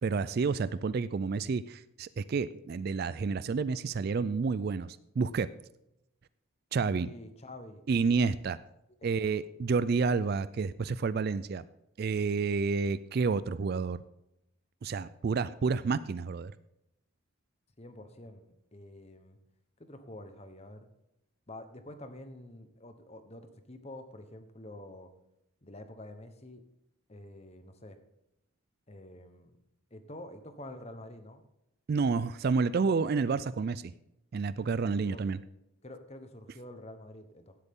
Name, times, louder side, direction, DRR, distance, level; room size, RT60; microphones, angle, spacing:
voice 1, 0.0-5.5 6.7-7.1 7.9-8.6 9.0-11.7 12.0-14.0 14.8-16.5 31.9-33.9 34.3-35.4, right 4 dB, 45° right, 16 dB, 0.3 m, -29 dB
voice 2, 6.9-7.9 9.2-9.3 17.8-19.4 19.8-20.9 21.5-25.1 25.6-26.6 27.1-28.0 28.9-29.5 29.9-31.4 34.9-35.2 35.8-37.5, left 1 dB, 30° left, 8 dB, 1.1 m, -47 dB
16.5 x 8.1 x 3.7 m, 0.84 s
head